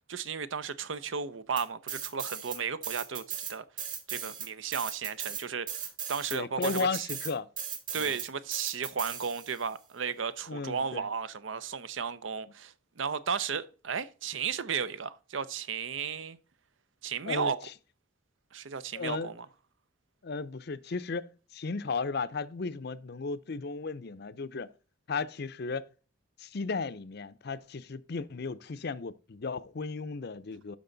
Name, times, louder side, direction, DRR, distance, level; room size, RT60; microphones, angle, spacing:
voice 1, 0.1-3.6 4.1-7.1 7.9-16.4 17.0-17.6 18.5-19.5, right 6 dB, 75° right, 0.6 m, -34 dB
sound 1, 1.6-2.6 2.8-9.7, right 8 dB, 45° right, 1.6 m, -37 dB
voice 2, 6.3-7.5 7.9-8.1 10.5-11.1 17.3-17.5 18.9-19.3 20.2-24.7 25.1-25.9 26.4-30.8, left 4 dB, 55° left, 0.6 m, -35 dB
12.5 x 5.3 x 3.9 m
head